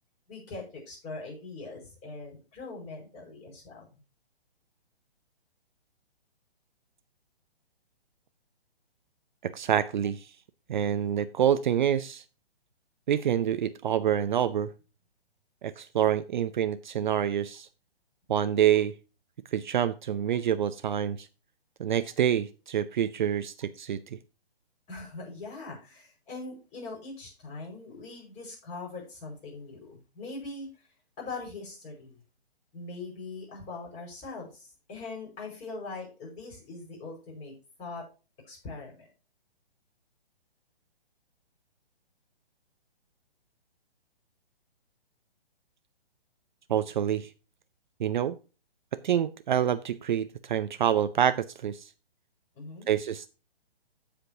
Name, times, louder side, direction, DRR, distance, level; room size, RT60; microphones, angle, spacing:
voice 1, 0.3-3.9 24.9-30.7 31.2-32.2 32.7-37.5 37.8-38.1 38.5-39.1 52.5-52.9, left 3 dB, 20° left, 5.3 m, -41 dB
voice 2, 9.4-10.2 10.7-12.2 13.1-14.7 15.6-17.7 18.3-18.9 19.5-21.3 21.8-24.0 46.7-47.3 48.0-48.4 49.0-51.8 52.9-53.3, right 9 dB, 50° right, 0.6 m, -27 dB
15.5 x 5.2 x 2.8 m
hypercardioid pair, 140°, 31 cm